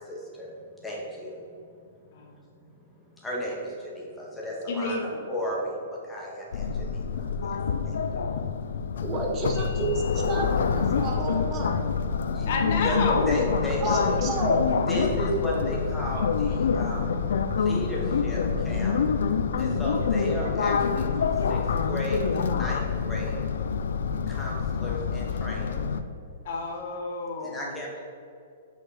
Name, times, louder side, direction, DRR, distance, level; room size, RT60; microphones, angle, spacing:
voice 1, 0.0-7.6 7.8-8.3 12.3-12.5 12.8-13.0 13.3-14.2 14.9-17.1 17.6-19.0 19.6-23.4 24.3-25.8 27.4-28.0, equal, 5° left, -4 dB, 2.0 m, -34 dB
voice 2, 4.7-5.2 12.5-13.3 26.4-27.7, left 3 dB, 55° left, 2 dB, 1.5 m, -30 dB
sound 1, 6.5-26.0, left 6 dB, 75° left, 0.5 m, -26 dB
voice 3, 9.0-11.8 13.8-14.6, right 3 dB, 25° right, 1 dB, 1.4 m, -31 dB
5.9 x 5.8 x 5.8 m, 2.4 s
hypercardioid pair, 140°, 0 cm